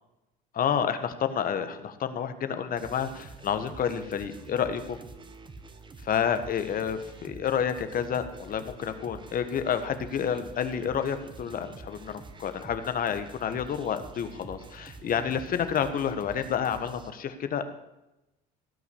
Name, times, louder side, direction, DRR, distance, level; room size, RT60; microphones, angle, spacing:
voice 1, 0.5-5.0 6.0-17.6, left 8 dB, 50° left, 10 dB, 1.4 m, -29 dB
sound 1, 2.8-17.1, right 3 dB, 25° right, 1.4 m, -47 dB
17.0 x 5.8 x 8.5 m, 0.94 s
supercardioid pair, 90°, 19 cm